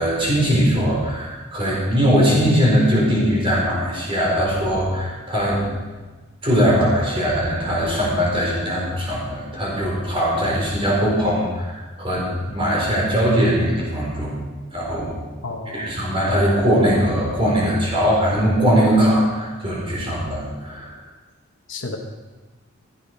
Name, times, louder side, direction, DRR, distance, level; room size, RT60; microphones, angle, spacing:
voice 1, 0.0-5.6 6.4-14.4 14.7-15.1 15.7-21.0, equal, 25° right, -5 dB, 4.5 m, -20 dB
voice 2, 15.4-16.0 21.7-22.0, left 3 dB, 60° left, 1 dB, 1.3 m, -31 dB
15.5 x 9.1 x 5.3 m, 1.3 s
head